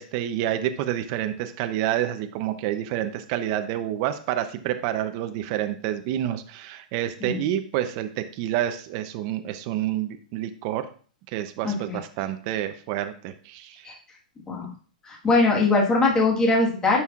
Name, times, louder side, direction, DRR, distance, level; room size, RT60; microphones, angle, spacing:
voice 1, 0.0-10.9 11.3-13.9, right 12 dB, 40° right, 8 dB, 0.6 m, -28 dB
voice 2, 11.6-12.0 13.8-13.9 14.5-14.7 15.1-17.0, left 3 dB, 15° left, -1 dB, 1.5 m, -21 dB
11.0 x 5.6 x 2.4 m, 0.42 s
hypercardioid pair, 150°, 5 cm